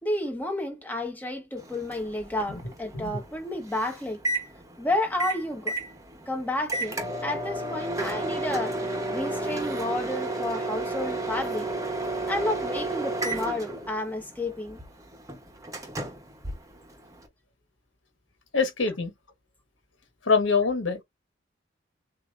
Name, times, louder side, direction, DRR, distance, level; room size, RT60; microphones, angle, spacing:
voice 1, 0.0-4.2 4.8-5.8 6.3-8.8 9.1-11.7 12.3-14.8, left 1 dB, 10° left, 1.1 m, -31 dB
Microwave oven, 1.6-17.3, right 2 dB, 20° right, 1.1 m, -33 dB
voice 2, 18.5-19.1 20.3-21.0, left 4 dB, 85° left, 1.4 m, -24 dB
6.9 x 2.7 x 2.5 m
head